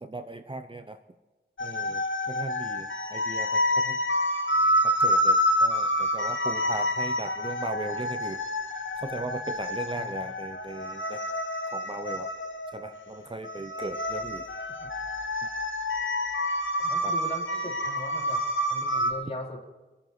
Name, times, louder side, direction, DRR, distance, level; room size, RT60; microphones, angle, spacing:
voice 1, 0.0-1.0 1.6-4.0 4.8-8.4 9.0-11.2 11.7-12.3 12.7-14.4 17.0-17.1, right 2 dB, 25° right, 7 dB, 0.8 m, -38 dB
sound 1, 1.6-19.1, equal, 75° left, 1.5 m, -28 dB
voice 2, 16.8-18.4 18.7-19.6, left 1 dB, 30° left, -2 dB, 3.8 m, -39 dB
25.5 x 9.0 x 4.9 m, 1.2 s
wide cardioid pair, 70°, 20 cm